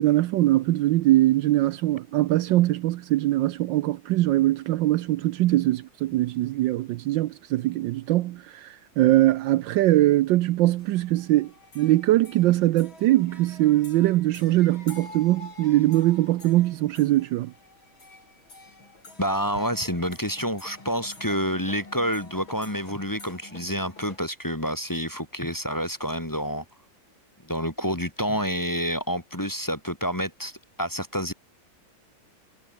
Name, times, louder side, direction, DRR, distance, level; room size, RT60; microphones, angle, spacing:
voice 1, 0.0-17.5, right 16 dB, 75° right, 1.2 m, -22 dB
sound 1, 10.8-24.2, left 2 dB, 75° left, 7.6 m, -48 dB
voice 2, 19.2-26.6 27.4-31.3, equal, 10° left, 1.8 m, -28 dB
omnidirectional pair, 2.2 m